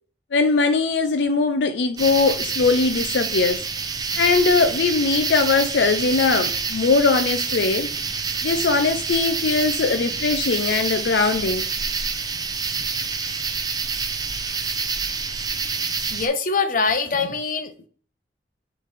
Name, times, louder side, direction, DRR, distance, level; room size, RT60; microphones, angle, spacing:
voice 1, 0.3-3.6 4.2-7.9 8.4-11.6, left 4 dB, 90° left, 0.5 m, -20 dB
sound 1, 2.0-16.3, right 5 dB, 20° right, 0.5 m, -27 dB
voice 2, 16.1-17.9, left 4 dB, 50° left, 0.9 m, -23 dB
7.3 x 3.3 x 4.1 m
head